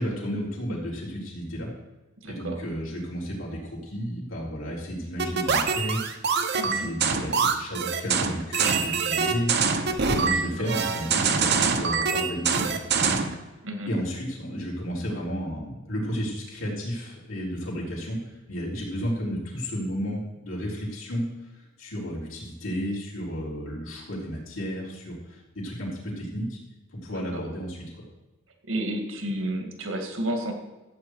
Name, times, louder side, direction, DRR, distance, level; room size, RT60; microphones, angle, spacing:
voice 1, 0.0-1.7 2.2-9.8 10.0-13.2 13.9-26.6 26.9-27.9, equal, 75° left, -5 dB, 4.0 m, -32 dB
voice 2, 2.2-2.6 6.6-6.9 13.6-13.9 27.1-27.4 28.7-30.5, right 1 dB, 70° right, 4 dB, 1.9 m, -31 dB
sound 1, 5.2-13.4, right 5 dB, 55° right, 1.0 m, -24 dB
13.5 x 8.2 x 4.7 m, 1.1 s
head